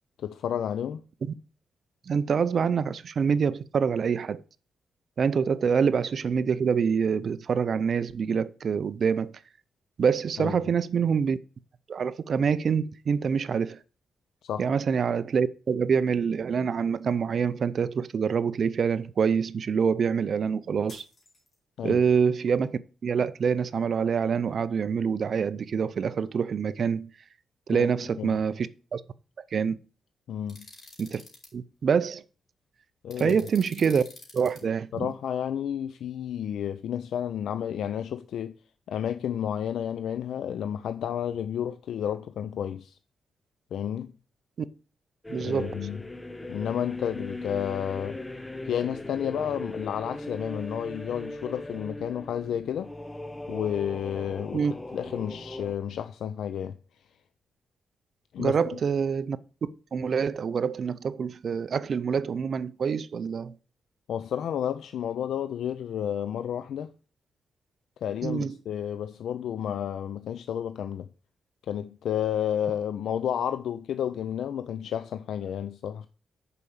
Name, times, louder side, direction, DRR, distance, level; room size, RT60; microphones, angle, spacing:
voice 1, 0.2-1.0 10.4-10.6 14.4-14.7 21.8-22.0 27.7-27.9 28.2-28.3 30.3-30.7 33.0-33.4 34.9-38.5 38.9-43.0 43.7-44.1 45.4-46.1 46.5-48.2 48.6-52.9 53.5-54.6 54.9-56.8 58.3-58.6 64.1-66.9 68.0-71.1 71.7-76.1, left 9 dB, 80° left, 0.4 m, -31 dB
voice 2, 2.1-4.4 5.2-9.3 10.0-11.4 11.9-13.8 14.6-21.0 21.8-27.1 27.7-29.0 29.5-29.8 31.0-31.2 31.5-32.2 33.2-34.0 34.3-35.1 45.3-45.8 54.5-54.7 58.4-59.4 59.9-63.5 68.2-68.5, right 6 dB, 50° right, 0.5 m, -26 dB
sound 1, 20.9-21.9, left 2 dB, 35° left, 2.6 m, -53 dB
sound 2, 30.5-31.5 33.1-34.6, left 3 dB, 50° left, 3.4 m, -47 dB
sound 3, 45.2-55.8, left 2 dB, 10° left, 0.6 m, -39 dB
6.8 x 4.9 x 7.1 m
cardioid pair, 125°, 0 cm